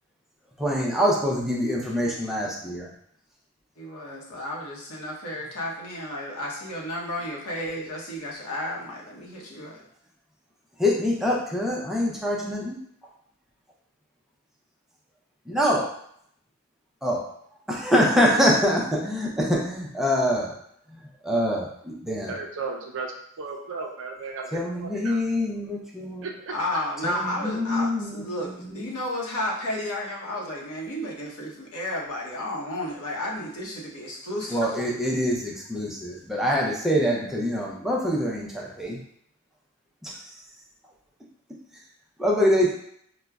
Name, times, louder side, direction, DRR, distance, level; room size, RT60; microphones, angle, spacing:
voice 1, 0.6-2.9 10.8-12.8 15.5-15.9 17.0-17.3 17.7-20.5 20.9-22.3 24.5-26.3 27.0-28.9 34.5-39.0 40.0-40.2 42.2-42.7, equal, ahead, -3 dB, 0.5 m, -25 dB
voice 2, 3.8-9.8 26.5-34.8, left 1 dB, 75° left, -3 dB, 0.9 m, -32 dB
voice 3, 22.3-25.2 26.2-26.5, right 4 dB, 60° right, 2 dB, 0.5 m, -35 dB
4.9 x 2.1 x 2.3 m, 0.69 s
head